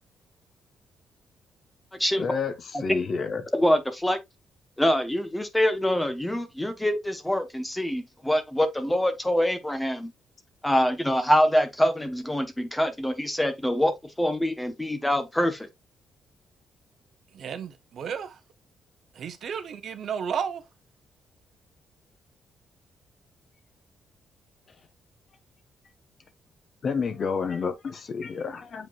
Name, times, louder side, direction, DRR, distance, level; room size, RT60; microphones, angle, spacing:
voice 1, 2.2-3.4 26.8-28.2 28.7-28.8, left 5 dB, 40° left, 1.0 m, -29 dB
voice 2, 3.5-4.2 4.8-10.1 10.6-13.9 14.2-15.7, equal, 5° left, 1.0 m, -25 dB
voice 3, 17.3-18.4 19.1-20.6, right 7 dB, 50° right, 0.9 m, -33 dB
7.5 x 5.2 x 2.4 m
cardioid pair, 165°, 0 cm